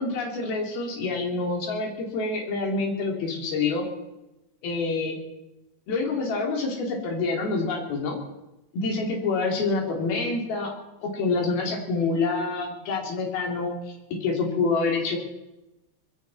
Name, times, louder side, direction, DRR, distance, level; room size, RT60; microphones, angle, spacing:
voice 1, 0.0-3.9 4.6-5.2 5.9-8.2 8.7-10.7 11.0-15.2, left 3 dB, 65° left, 1 dB, 4.7 m, -27 dB
21.0 x 15.5 x 4.1 m, 0.97 s
omnidirectional pair, 4.9 m